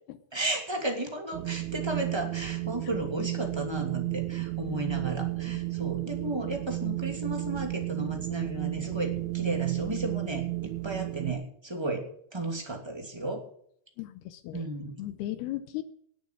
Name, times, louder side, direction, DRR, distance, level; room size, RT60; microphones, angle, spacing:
voice 1, 0.3-13.4 14.5-15.0, right 1 dB, 10° right, 3 dB, 1.8 m, -34 dB
Wind, 1.3-11.3, right 19 dB, 90° right, 1.7 m, -33 dB
voice 2, 14.0-14.7 15.0-15.8, left 14 dB, 85° left, 11 dB, 2.8 m, -36 dB
19.5 x 7.2 x 6.3 m, 0.63 s
omnidirectional pair, 4.6 m